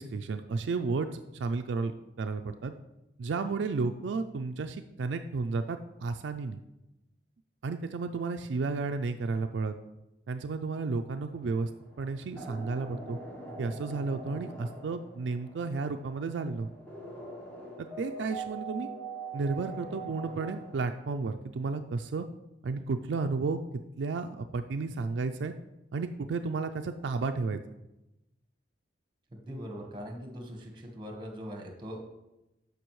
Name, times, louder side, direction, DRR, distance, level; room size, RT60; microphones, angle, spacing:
voice 1, 0.0-2.7 3.2-6.6 7.6-9.8 10.3-11.7 12.0-13.2 13.6-16.7 17.8-18.9 19.3-22.3 22.6-23.6 24.0-25.5 25.9-27.6, right 4 dB, 80° right, 7 dB, 0.4 m, -32 dB
sound 1, 11.3-20.9, right 3 dB, 10° left, 1.2 m, -43 dB
voice 2, 29.3-32.0, equal, 25° right, 2 dB, 1.2 m, -41 dB
13.0 x 5.1 x 3.1 m, 0.95 s
head